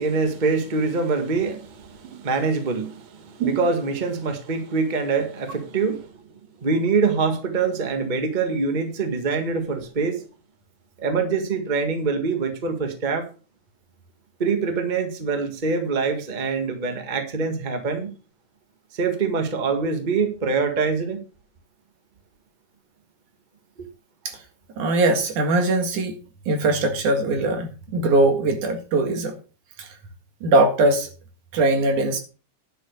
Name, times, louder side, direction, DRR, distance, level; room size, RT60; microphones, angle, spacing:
voice 1, 0.0-6.1 6.6-10.2 11.0-13.3 14.4-18.1 18.9-21.2, right 4 dB, 20° right, 1.2 m, -24 dB
voice 2, 24.8-26.2 26.5-29.4 29.8-29.9 30.4-31.1 31.5-32.2, right 2 dB, 80° right, 3.4 m, -21 dB
10.5 x 6.5 x 6.5 m
omnidirectional pair, 3.4 m